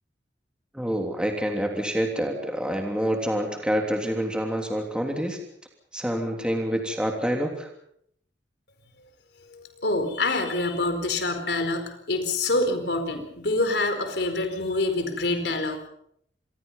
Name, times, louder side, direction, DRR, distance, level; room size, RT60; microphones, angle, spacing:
voice 1, 0.7-5.4 5.9-7.7, equal, 5° right, 2 dB, 3.2 m, -27 dB
voice 2, 9.5-15.8, left 2 dB, 65° left, 6 dB, 4.4 m, -26 dB
27.5 x 21.5 x 5.6 m, 0.70 s
head